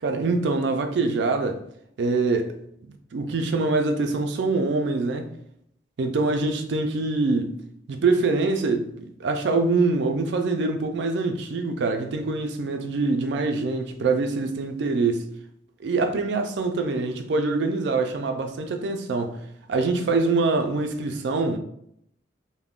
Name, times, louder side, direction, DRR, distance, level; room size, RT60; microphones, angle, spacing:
voice 1, 0.0-1.6 2.0-2.5 2.8-5.3 6.0-7.6 7.9-15.3 15.8-19.4 19.7-21.6, right 3 dB, 70° right, 0.4 m, -24 dB
3.5 x 2.1 x 2.3 m
head